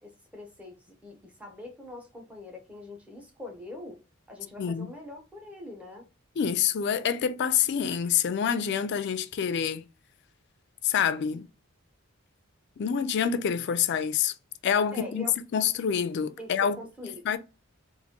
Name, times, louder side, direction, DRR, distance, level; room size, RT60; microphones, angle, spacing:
voice 1, 0.0-4.0 4.3-6.1 14.9-15.4 16.4-17.3, left 2 dB, 5° right, 0.7 m, -43 dB
voice 2, 4.6-4.9 6.4-9.8 10.8-11.5 12.8-14.3 14.6-15.2 15.5-16.8 17.3-17.4, left 8 dB, 55° left, 0.3 m, -27 dB
4.0 x 2.5 x 2.8 m
head